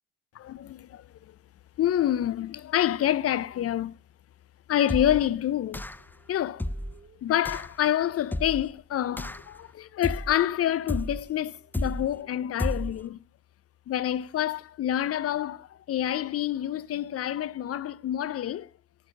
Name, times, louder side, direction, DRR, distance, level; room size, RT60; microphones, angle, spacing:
voice 1, 0.4-1.3 1.8-3.9 4.7-5.8 6.3-6.6 7.2-13.2 13.9-18.7, left 11 dB, 45° left, 0.6 m, -27 dB
sound 1, 4.9-5.3 5.7-6.1 6.6-7.0 7.5-7.7 8.3-8.7 9.2-9.6 10.0-10.4 10.9-11.3 11.7-12.2 12.6-13.0, left 1 dB, 5° left, 0.5 m, -32 dB
sound 2, 5.1-8.8 9.3-9.4 9.8-11.9, right 7 dB, 45° right, 2.8 m, -64 dB
18.0 x 6.6 x 6.4 m
hypercardioid pair, 65°, 32 cm